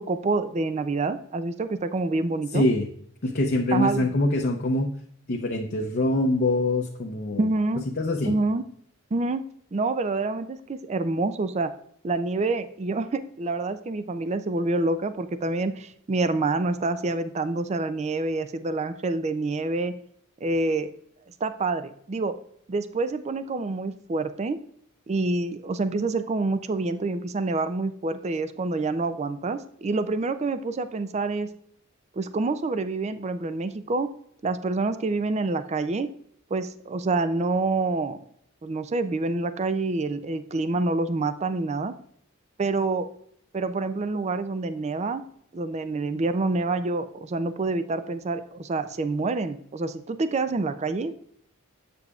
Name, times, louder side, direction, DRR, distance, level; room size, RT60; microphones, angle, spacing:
voice 1, 0.0-2.7 3.7-4.1 7.4-7.8 8.2-8.6 9.1-9.4 9.7-11.7 12.0-19.9 20.4-20.9 21.4-22.4 22.7-24.6 25.1-31.5 32.2-34.1 34.4-36.1 36.5-38.2 38.6-41.9 42.6-43.1 43.5-45.2 45.5-51.2, right 3 dB, 30° right, 11 dB, 0.4 m, -27 dB
voice 2, 2.5-2.9 3.2-4.9 5.3-7.5 8.0-8.4, left 1 dB, 45° left, 1 dB, 0.6 m, -24 dB
7.8 x 6.8 x 2.4 m, 0.68 s
head